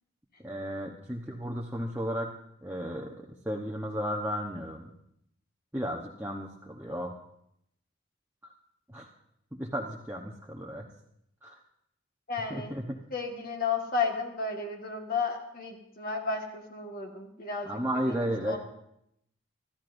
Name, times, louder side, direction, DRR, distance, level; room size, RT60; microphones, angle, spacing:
voice 1, 0.4-3.2 3.4-4.9 5.7-7.2 8.9-9.1 9.5-10.9 11.4-11.6 12.5-13.0 17.6-18.6, equal, 10° right, -3 dB, 0.9 m, -34 dB
voice 2, 12.3-12.8 13.1-18.6, left 4 dB, 45° left, 2 dB, 1.6 m, -33 dB
25.5 x 13.5 x 2.6 m, 0.76 s
head